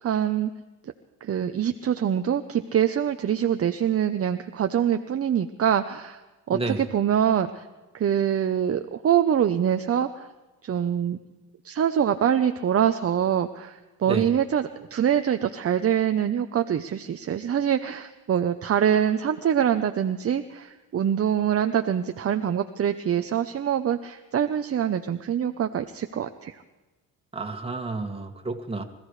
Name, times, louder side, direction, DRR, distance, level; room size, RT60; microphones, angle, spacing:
voice 1, 0.0-0.5 1.2-6.2 6.5-7.6 7.9-10.3 10.6-11.2 11.6-26.6, right 9 dB, 40° right, 7 dB, 0.8 m, -24 dB
voice 2, 6.5-6.9 14.1-14.3 27.3-28.8, right 3 dB, 15° right, 2 dB, 2.2 m, -30 dB
25.5 x 15.0 x 3.3 m, 1.2 s
cardioid pair, 90°, 37 cm